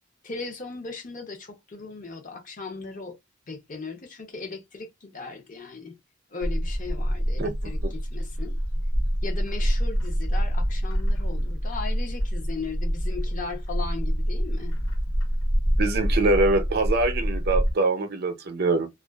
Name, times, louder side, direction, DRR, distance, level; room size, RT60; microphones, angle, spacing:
voice 1, 0.2-3.2 3.5-6.0 6.3-8.6 9.2-14.7, left 4 dB, 40° left, 0.7 m, -37 dB
Bird, 6.4-17.7, equal, 90° left, 0.7 m, -26 dB
voice 2, 15.8-18.9, right 2 dB, 50° right, 0.5 m, -24 dB
2.4 x 2.3 x 2.3 m
head